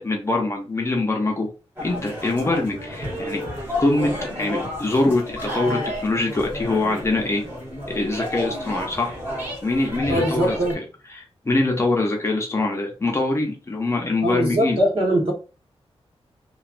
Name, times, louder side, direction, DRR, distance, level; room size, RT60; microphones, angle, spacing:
voice 1, 0.0-1.5 1.8-3.4 3.8-7.4 7.9-9.1 9.6-10.6 11.1-14.8, left 2 dB, 25° left, 0.6 m, -23 dB
sound 1, 1.8-10.7, left 1 dB, 20° right, 1.2 m, -31 dB
voice 2, 10.1-10.8 14.2-15.3, equal, 60° right, 1.3 m, -21 dB
3.1 x 2.3 x 2.5 m
wide cardioid pair, 165°, 11 cm